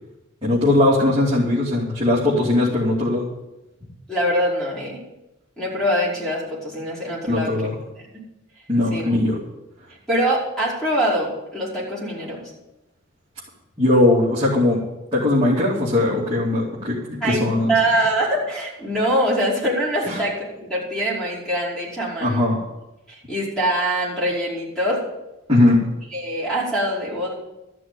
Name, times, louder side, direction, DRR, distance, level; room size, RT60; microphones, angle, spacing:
voice 1, 0.4-3.3 7.3-7.7 8.7-9.4 13.8-14.8 15.1-17.7 20.1-20.2 22.2-22.6 25.5-25.9, left 1 dB, 25° right, -8 dB, 2.8 m, -19 dB
voice 2, 4.1-5.0 5.6-8.0 8.9-9.1 10.1-12.4 17.2-22.5 23.1-25.0 26.1-27.3, right 1 dB, 5° left, -7 dB, 5.1 m, -24 dB
14.0 x 6.2 x 9.4 m, 0.98 s
head